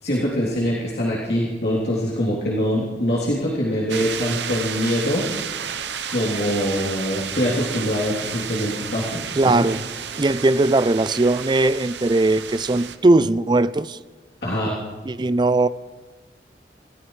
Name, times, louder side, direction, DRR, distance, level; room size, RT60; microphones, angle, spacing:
voice 1, 0.0-5.3 6.1-9.7 14.4-14.7, equal, 65° left, -6 dB, 3.2 m, -24 dB
sound 1, 3.9-13.0, right 8 dB, 85° right, 0.9 m, -32 dB
voice 2, 9.4-9.8 10.2-14.0 15.1-15.7, right 2 dB, 25° right, 15 dB, 0.4 m, -19 dB
27.5 x 14.5 x 3.2 m, 1.3 s
head